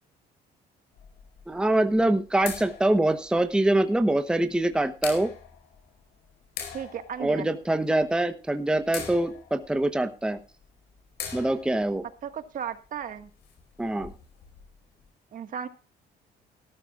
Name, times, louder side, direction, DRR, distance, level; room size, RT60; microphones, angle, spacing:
sound 1, 0.9-15.1, left 7 dB, 70° left, 4.9 m, -44 dB
voice 1, 1.5-5.3 7.2-10.4 11.3-12.0 13.8-14.1, right 1 dB, 5° right, 8 dB, 1.0 m, -24 dB
voice 2, 6.7-7.5 12.2-13.3 15.3-15.7, right 8 dB, 55° right, 9 dB, 1.7 m, -35 dB
17.5 x 13.5 x 2.4 m, 0.36 s
cardioid pair, 110°, 17 cm